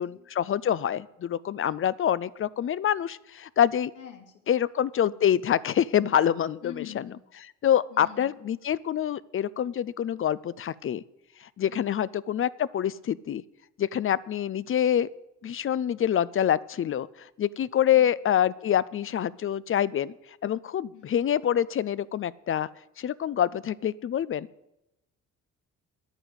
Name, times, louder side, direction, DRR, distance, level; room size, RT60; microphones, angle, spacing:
voice 1, 0.0-3.9 4.5-7.0 7.6-11.0 11.6-13.4 13.8-15.1 15.4-17.1 17.4-20.1 20.4-22.7 23.0-24.5, left 10 dB, 45° left, 19 dB, 0.5 m, -26 dB
voice 2, 4.0-4.6 6.6-7.2 7.9-8.4 20.9-21.2, left 11 dB, 85° left, 3 dB, 2.4 m, -45 dB
10.0 x 9.1 x 8.1 m, 0.89 s
cardioid pair, 90°, 30 cm